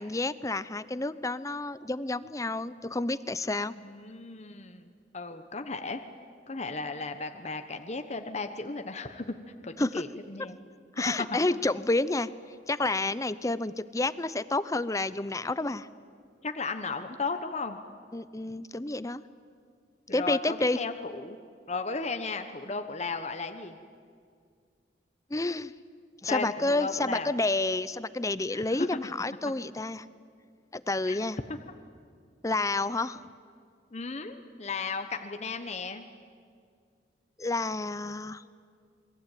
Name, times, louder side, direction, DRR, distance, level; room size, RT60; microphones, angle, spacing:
voice 1, 0.0-3.7 9.8-10.0 11.0-12.3 12.7-15.9 18.1-19.2 20.1-20.8 25.3-25.7 26.2-30.0 30.7-31.4 32.4-33.2 37.4-38.4, left 2 dB, 20° left, 15 dB, 0.7 m, -29 dB
voice 2, 3.8-6.0 6.5-9.4 9.6-10.6 16.4-17.8 20.1-21.4 21.7-23.7 26.3-27.3 28.5-28.9 31.1-31.2 31.5-31.6 33.9-36.1, left 3 dB, 40° left, 7 dB, 1.2 m, -35 dB
28.0 x 22.0 x 9.2 m, 2.2 s
head